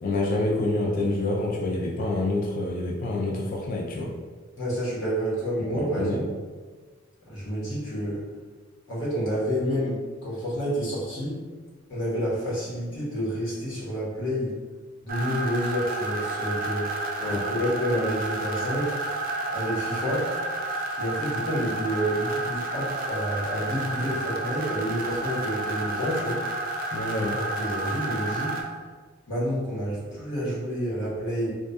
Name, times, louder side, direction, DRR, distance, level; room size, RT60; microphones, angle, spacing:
voice 1, 0.0-4.1 5.7-6.2 17.2-17.4 26.9-27.4, left 2 dB, 45° left, -2 dB, 0.3 m, -27 dB
voice 2, 4.6-6.2 7.2-8.2 8.9-11.4 11.9-14.6 15.0-16.9 17.3-19.0 19.5-20.3 21.0-26.4 27.5-28.7 29.3-31.5, equal, 75° left, -8 dB, 1.1 m, -29 dB
sound 1, 15.1-28.6, right 2 dB, 45° right, 0.3 m, -31 dB
2.6 x 2.3 x 2.2 m, 1.4 s
head